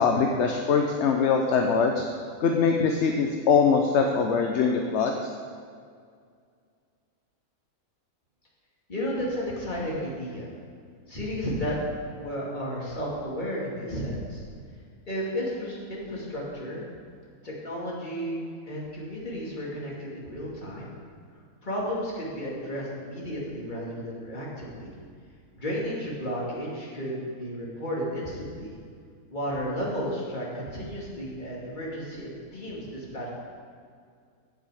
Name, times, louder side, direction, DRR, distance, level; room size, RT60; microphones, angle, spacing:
voice 1, 0.0-2.0 2.4-5.3, left 5 dB, 60° left, 3 dB, 0.9 m, -23 dB
voice 2, 8.9-10.5 11.1-11.8 12.2-14.4 15.1-16.8 17.4-20.9 21.6-24.9 25.5-28.8 29.3-33.3, equal, 30° left, -5 dB, 2.5 m, -33 dB
16.0 x 6.0 x 5.0 m, 2.2 s
omnidirectional pair, 1.5 m